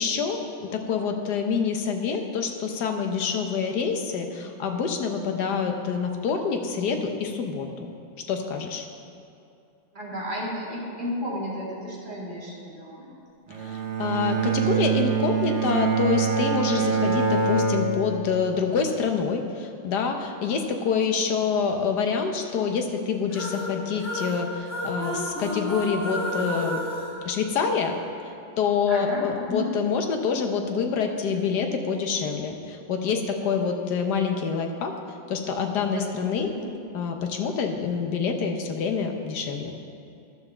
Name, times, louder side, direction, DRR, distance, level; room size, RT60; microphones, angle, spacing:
voice 1, 0.0-7.9 8.3-8.8 13.6-26.8 27.2-28.0 28.2-34.9 35.3-36.5 36.9-39.7, left 6 dB, 60° left, 4 dB, 1.4 m, -26 dB
voice 2, 9.9-13.1 28.9-29.7 35.9-36.1 36.4-36.7, equal, 25° right, -5 dB, 2.3 m, -33 dB
Bowed string instrument, 13.5-18.7, right 6 dB, 75° right, 2.0 m, -25 dB
sound 1, 23.3-28.0, left 1 dB, 10° left, 2.9 m, -32 dB
11.5 x 7.1 x 6.8 m, 2.6 s
omnidirectional pair, 2.1 m